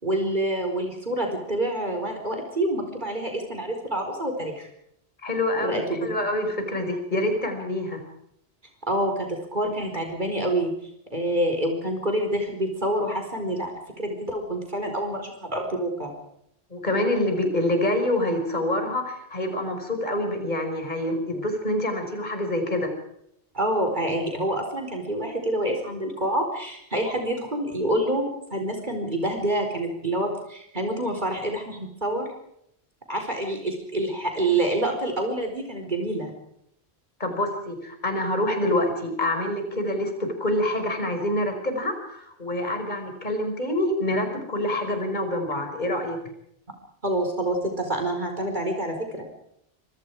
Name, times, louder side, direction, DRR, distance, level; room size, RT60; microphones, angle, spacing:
voice 1, 0.0-4.7 5.6-6.1 8.9-10.7 11.1-13.7 14.0-16.1 23.5-32.3 33.1-36.3 47.0-49.3, right 1 dB, 45° right, 3 dB, 4.8 m, -27 dB
voice 2, 5.2-8.0 16.7-22.9 37.2-46.2, left 1 dB, 45° left, 5 dB, 5.6 m, -26 dB
26.5 x 24.0 x 4.8 m, 0.74 s
omnidirectional pair, 1.1 m